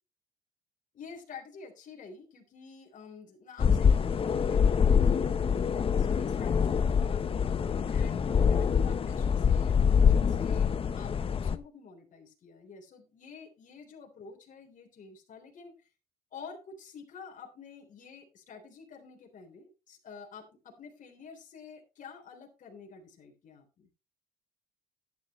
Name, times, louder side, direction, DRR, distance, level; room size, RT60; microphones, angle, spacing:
voice 1, 0.9-15.7 16.3-23.9, left 5 dB, 50° left, 2 dB, 3.6 m, -49 dB
sound 1, 3.6-11.6, left 6 dB, 35° left, 0.8 m, -25 dB
11.5 x 10.5 x 3.0 m, 0.30 s
cardioid pair, 110°, 17 cm